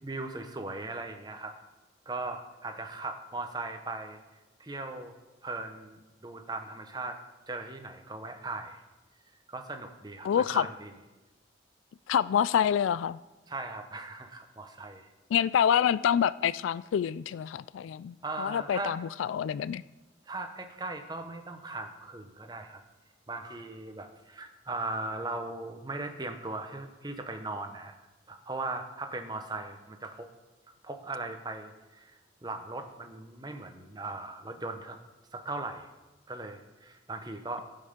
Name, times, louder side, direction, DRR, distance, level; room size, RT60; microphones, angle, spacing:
voice 1, 0.0-1.5 2.1-4.2 4.6-5.1 5.4-7.2 7.5-8.8 9.5-10.9 13.5-15.1 18.2-19.0 20.3-22.8 23.3-27.9 28.3-30.3 30.8-35.0 35.3-35.9 36.3-37.6, right 2 dB, 20° right, 6 dB, 0.8 m, -38 dB
voice 2, 10.2-10.7 12.1-13.2 15.3-19.8, left 8 dB, 90° left, 18 dB, 0.3 m, -27 dB
15.5 x 5.5 x 5.2 m, 1.1 s
head